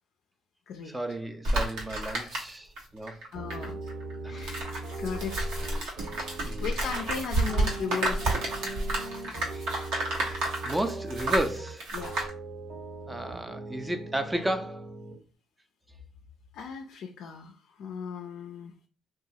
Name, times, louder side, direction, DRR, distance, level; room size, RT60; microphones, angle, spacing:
voice 1, 0.8-3.2 4.2-4.6 6.4-6.7 9.5-9.7 10.1-11.9 13.1-14.9, right 1 dB, 15° right, 0.5 m, -33 dB
sound 1, 1.4-2.8 3.1-12.3, right 2 dB, 85° right, 1.0 m, -30 dB
voice 2, 3.3-3.8 4.3-4.7 5.0-5.4 6.5-8.4 11.9-12.2 16.5-18.7, left 6 dB, 70° left, 0.4 m, -37 dB
sound 2, 3.3-15.2, right 2 dB, 65° right, 1.4 m, -40 dB
2.8 x 2.4 x 2.7 m
cardioid pair, 80°, 0 cm